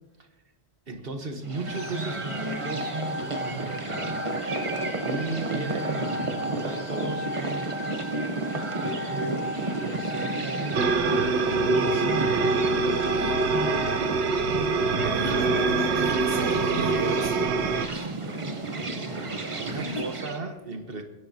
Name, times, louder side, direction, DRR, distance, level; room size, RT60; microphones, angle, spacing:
voice 1, 0.9-2.9 3.2-4.2 4.5-7.3 8.8-13.4 17.9-21.0, right 2 dB, 60° right, 5 dB, 1.3 m, -37 dB
sound 1, 1.4-20.4, right 2 dB, 30° right, 0.9 m, -32 dB
sound 2, 1.7-14.0, left 1 dB, 15° right, 2.9 m, -36 dB
sound 3, 10.7-17.9, right 4 dB, 85° right, 1.0 m, -25 dB
voice 2, 15.1-17.5 19.6-19.9, equal, 40° left, -4 dB, 3.5 m, -33 dB
27.5 x 10.5 x 2.8 m, 1.1 s
omnidirectional pair, 1.1 m